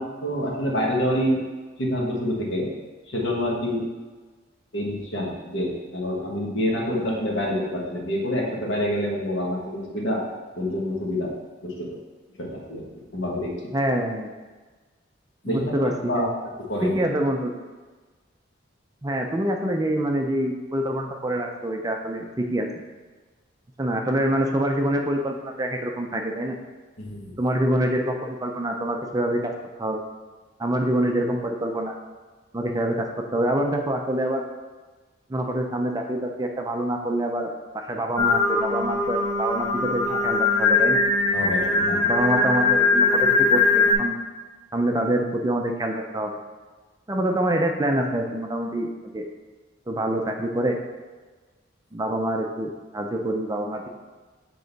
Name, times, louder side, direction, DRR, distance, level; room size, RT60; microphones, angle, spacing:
voice 1, 0.0-1.4 1.8-2.7 3.1-3.8 4.7-10.2 10.6-11.3 11.6-12.0 12.4-12.9 13.1-13.5 15.4-17.1 27.0-27.3 40.1-40.2 41.3-42.0, equal, 70° left, -2 dB, 1.3 m, -27 dB
voice 2, 13.7-14.3 15.5-16.3 16.8-17.5 19.0-22.7 23.8-26.6 27.4-29.5 29.8-30.0 30.6-31.9 32.5-33.1 33.3-34.4 35.3-41.0 42.0-44.2 44.7-46.4 47.1-49.2 49.9-50.8 51.9-53.9, right 1 dB, 20° right, 3 dB, 0.5 m, -26 dB
Singing, 38.2-43.9, left 3 dB, 15° left, 1.0 m, -21 dB
7.1 x 3.8 x 4.0 m, 1.3 s
head